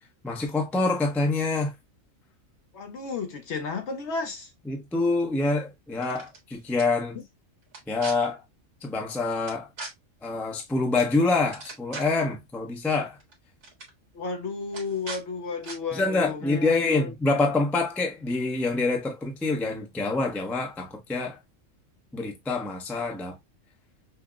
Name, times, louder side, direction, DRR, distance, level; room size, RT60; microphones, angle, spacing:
voice 1, 0.2-1.7 4.7-7.2 7.9-8.4 8.8-9.7 10.2-13.2 15.9-21.4 22.1-23.4, left 3 dB, ahead, 0.4 m, -26 dB
voice 2, 2.7-4.5 7.1-7.2 14.1-17.1, left 4 dB, 65° left, 0.8 m, -33 dB
sound 1, 5.9-6.4 6.8-6.9 7.7-8.1 9.5-9.9 11.0-11.1 11.4-12.2 13.2-13.3 13.6-13.9 14.7-15.2 15.6-15.8, right 3 dB, 55° right, 1.4 m, -39 dB
5.6 x 2.0 x 2.3 m
omnidirectional pair, 1.4 m